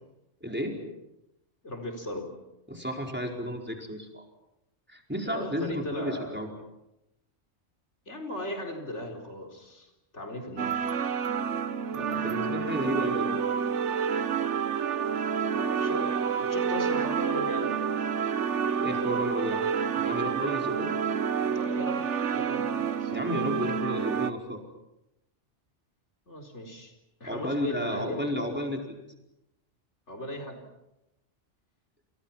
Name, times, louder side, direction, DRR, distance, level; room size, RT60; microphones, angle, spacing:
voice 1, 0.4-0.8 2.7-4.2 4.9-6.5 11.9-13.4 18.8-19.6 19.9-21.0 23.1-24.6 27.2-28.9, equal, 10° right, 1 dB, 4.8 m, -32 dB
voice 2, 1.6-2.3 5.3-6.4 8.1-10.9 13.1-13.2 15.5-17.8 21.4-22.1 22.3-23.1 26.3-26.9 27.2-28.3 30.1-30.7, left 1 dB, 70° left, 4 dB, 4.7 m, -37 dB
sound 1, 10.6-24.3, right 7 dB, 75° right, 1.4 m, -29 dB
28.5 x 28.5 x 5.9 m, 0.91 s
omnidirectional pair, 1.2 m